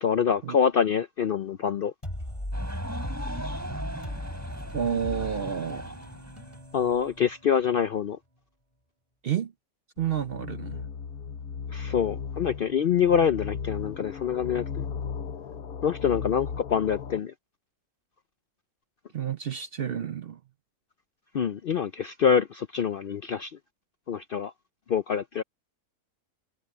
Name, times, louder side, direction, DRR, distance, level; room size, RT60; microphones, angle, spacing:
voice 1, 0.0-1.9 6.7-8.2 11.7-14.8 15.8-17.3 21.3-23.5 24.1-24.5 24.9-25.4, left 7 dB, 60° left, 0.6 m, -25 dB
sound 1, 2.0-7.7, left 1 dB, 20° left, 6.3 m, -37 dB
sound 2, 2.5-7.0, right 1 dB, 10° right, 3.6 m, -39 dB
voice 2, 4.7-5.8 9.2-9.5 10.0-10.9 19.1-20.4, right 8 dB, 55° right, 0.7 m, -30 dB
sound 3, 10.0-17.2, left 6 dB, 80° left, 1.5 m, -36 dB
omnidirectional pair, 1.5 m